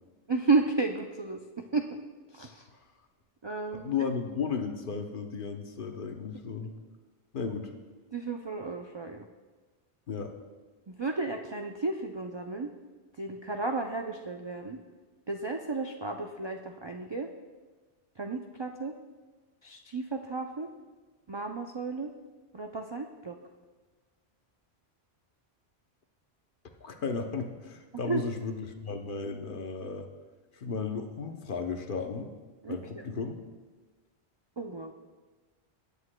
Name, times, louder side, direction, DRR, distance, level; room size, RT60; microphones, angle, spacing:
voice 1, 0.3-2.0 2.3-2.7 3.4-3.9 8.1-9.3 10.9-12.7 13.2-14.8 15.3-17.3 18.2-18.9 19.6-20.7 21.3-22.1 22.5-23.4 27.9-28.2 32.6-33.0 34.6-34.9, right 3 dB, 45° right, 3 dB, 0.3 m, -33 dB
voice 2, 3.7-6.7 7.3-7.7 10.1-10.3 26.8-30.1 30.5-32.3 32.7-33.4, left 5 dB, 55° left, 5 dB, 0.9 m, -34 dB
17.0 x 8.1 x 2.2 m, 1.3 s
omnidirectional pair, 1.1 m